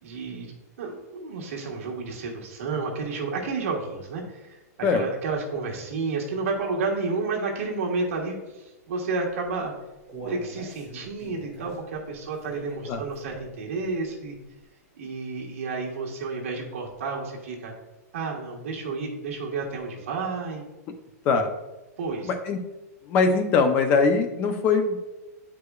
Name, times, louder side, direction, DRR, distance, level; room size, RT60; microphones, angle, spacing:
voice 1, 0.0-4.6 4.9-9.7 10.2-14.3 14.9-17.7 18.1-20.6 22.0-22.3, right 4 dB, 55° right, -1 dB, 1.4 m, -31 dB
Human voice, 9.5-13.7 14.1-14.2 14.6-14.7, right 2 dB, 5° right, 2.0 m, -43 dB
voice 2, 22.3-22.6 23.1-25.0, left 4 dB, 20° left, 7 dB, 0.4 m, -22 dB
9.4 x 4.7 x 2.3 m, 1.0 s
supercardioid pair, 180°, 9 cm